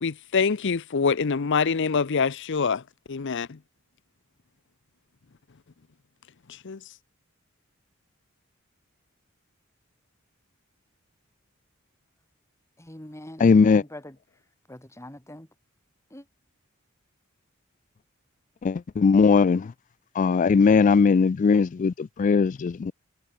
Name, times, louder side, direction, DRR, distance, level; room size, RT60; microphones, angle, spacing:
voice 1, 0.0-2.8 3.1-3.6 6.5-6.8, left 5 dB, 60° left, 0.7 m, -25 dB
voice 2, 12.8-14.2 14.7-15.5 16.1-16.2, left 1 dB, 15° left, 3.8 m, -43 dB
voice 3, 13.4-13.8 18.6-19.7 20.2-22.9, left 5 dB, 40° left, 0.3 m, -19 dB
head